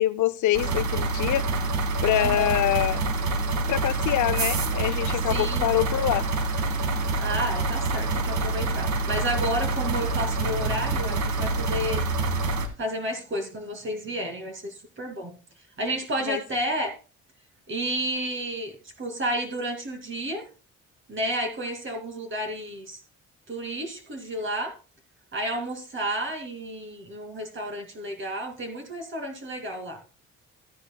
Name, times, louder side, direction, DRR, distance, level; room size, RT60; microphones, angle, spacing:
voice 1, 0.0-1.5 2.0-3.0 3.7-6.2 16.3-16.4, left 13 dB, 75° left, 0.6 m, -25 dB
sound 1, 0.5-12.7, right 3 dB, 65° right, 1.6 m, -26 dB
voice 2, 2.1-2.6 5.3-5.7 7.1-12.0 12.8-15.3 15.8-16.9 17.7-20.5 21.1-23.0 23.5-24.7 25.3-30.0, right 1 dB, 40° right, 2.7 m, -31 dB
14.0 x 9.7 x 2.3 m
cardioid pair, 90°, 30 cm